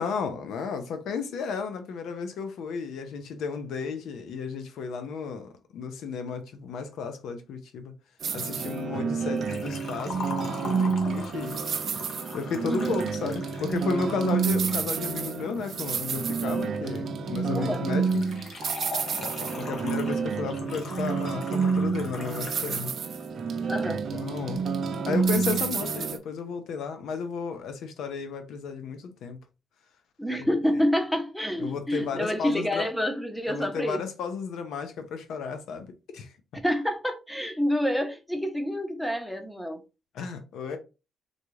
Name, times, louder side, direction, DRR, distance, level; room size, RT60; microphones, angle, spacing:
voice 1, 0.0-7.9 8.3-11.6 12.3-18.3 19.6-22.9 24.1-24.6 25.1-29.4 30.4-30.5 31.6-32.9 33.5-36.3 40.1-40.8, left 5 dB, 80° left, 0.6 m, -33 dB
sound 1, 8.2-26.2, right 5 dB, 55° right, 0.5 m, -29 dB
Liquid, 9.4-14.3 18.1-22.9 23.2-23.3 24.2-24.3, left 3 dB, 60° left, 1.0 m, -41 dB
voice 2, 23.7-24.0 30.2-34.0 36.6-39.8, equal, 5° left, 0.7 m, -28 dB
3.8 x 2.3 x 3.1 m
cardioid pair, 90°, 0 cm